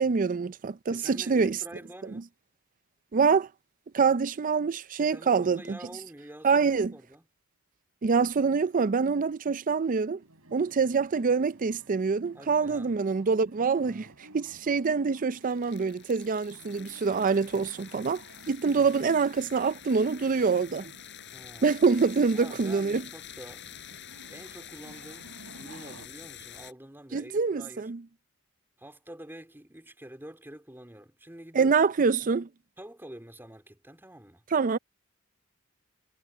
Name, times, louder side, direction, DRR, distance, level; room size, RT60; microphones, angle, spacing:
voice 1, 0.0-1.6 2.1-2.2 3.1-3.5 3.9-5.8 6.4-6.9 8.0-10.2 10.5-14.1 14.3-20.9 21.6-23.0 27.1-28.0 31.5-32.5 34.5-34.8, right 5 dB, 40° right, 0.4 m, -25 dB
voice 2, 0.9-2.3 5.0-7.3 12.3-12.9 13.6-14.1 18.7-19.0 21.3-21.7 22.3-23.7 24.3-27.9 28.8-31.7 32.2-32.3 32.8-34.4, right 1 dB, 10° right, 3.6 m, -47 dB
sound 1, 10.2-26.1, right 2 dB, 75° right, 4.9 m, -54 dB
sound 2, 15.2-26.7, left 9 dB, 55° left, 5.3 m, -47 dB
head